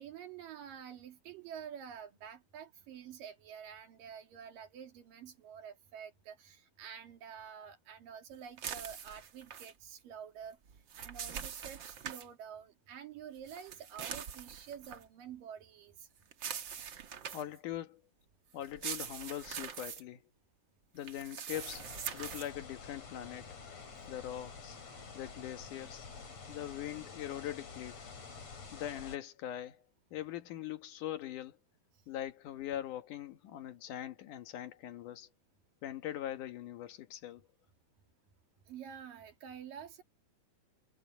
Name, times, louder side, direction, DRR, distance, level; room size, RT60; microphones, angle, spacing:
voice 1, 0.0-10.6 11.0-16.1 38.7-40.0, right 8 dB, 90° right, 4.1 m, -48 dB
sound 1, 8.6-9.7 10.7-12.3 13.5-15.0 16.3-17.6 18.6-20.0 21.0-22.5, right 8 dB, 55° right, 1.3 m, -43 dB
voice 2, 17.3-18.0 18.5-20.2 20.9-23.6 24.1-24.8 25.1-26.1 26.5-28.1 28.7-29.8 30.1-31.6 32.1-35.3 35.8-37.5, left 12 dB, 70° left, 2.9 m, -42 dB
sound 2, 21.5-29.2, left 5 dB, 50° left, 5.2 m, -49 dB
omnidirectional pair, 3.8 m